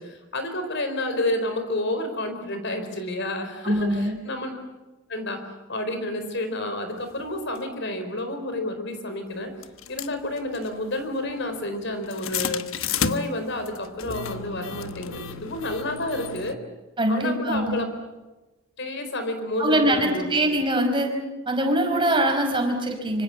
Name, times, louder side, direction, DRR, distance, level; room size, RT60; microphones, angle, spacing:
voice 1, 0.0-4.6 5.1-5.4 5.7-9.5 9.9-12.6 13.0-16.6 17.1-17.9 18.8-20.3, left 1 dB, 55° left, 7 dB, 4.5 m, -30 dB
voice 2, 3.6-4.2 17.0-17.8 19.6-21.1 21.5-23.2, right 1 dB, 25° right, 3 dB, 5.0 m, -23 dB
sound 1, 7.5-7.6 8.6-8.7 9.6-16.5, left 7 dB, 75° left, 1.1 m, -33 dB
25.5 x 25.5 x 7.2 m, 1.1 s
head